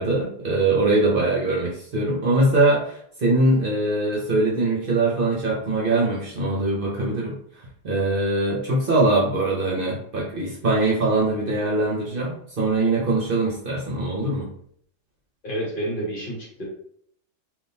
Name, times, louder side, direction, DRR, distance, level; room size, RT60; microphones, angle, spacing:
voice 1, 0.0-14.5, right 2 dB, 50° right, -4 dB, 0.8 m, -22 dB
voice 2, 15.4-16.7, right 1 dB, 45° left, -4 dB, 1.1 m, -29 dB
3.6 x 2.6 x 2.7 m, 0.66 s
omnidirectional pair, 1.3 m